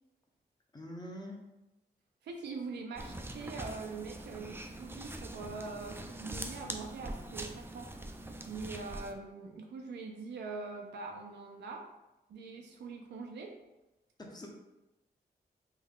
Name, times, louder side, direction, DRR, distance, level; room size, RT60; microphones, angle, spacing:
voice 1, 0.7-1.4 14.2-14.5, left 1 dB, 25° left, 0 dB, 0.8 m, -44 dB
voice 2, 2.2-8.1 8.5-11.9 12.3-13.6, right 4 dB, 90° right, 2 dB, 0.4 m, -43 dB
sound 1, 3.0-9.1, right 1 dB, 15° right, 0.4 m, -43 dB
3.4 x 2.1 x 3.6 m, 0.98 s
cardioid pair, 55°, 17 cm